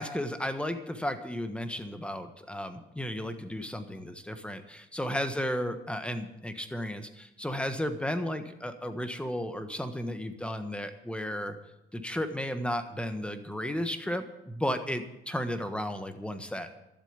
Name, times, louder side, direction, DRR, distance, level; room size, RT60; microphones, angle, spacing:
voice 1, 0.0-11.6 11.9-16.7, equal, 5° left, 8 dB, 1.4 m, -34 dB
12.5 x 7.4 x 9.8 m, 0.89 s
cardioid pair, 90°, 20 cm